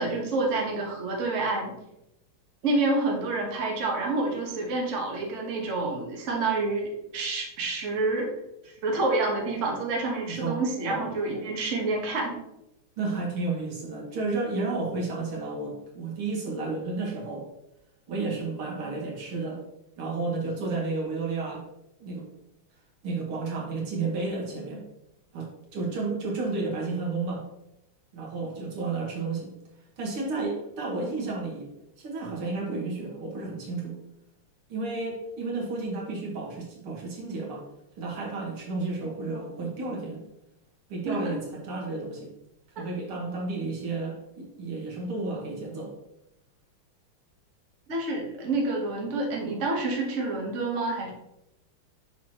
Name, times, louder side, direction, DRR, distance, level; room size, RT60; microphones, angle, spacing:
voice 1, 0.0-1.7 2.6-8.3 8.8-12.4 41.1-41.3 42.8-42.9 47.9-51.1, right 2 dB, 40° right, -1 dB, 1.4 m, -28 dB
voice 2, 10.3-11.1 13.0-17.5 18.1-19.6 20.0-21.6 22.0-22.3 23.0-24.8 25.3-27.4 28.1-29.5 30.0-31.7 32.0-34.0 34.7-37.6 38.0-40.2 40.9-42.3 42.8-45.9, right 3 dB, 75° right, -2 dB, 2.5 m, -32 dB
7.0 x 6.0 x 3.0 m, 0.85 s
omnidirectional pair, 2.4 m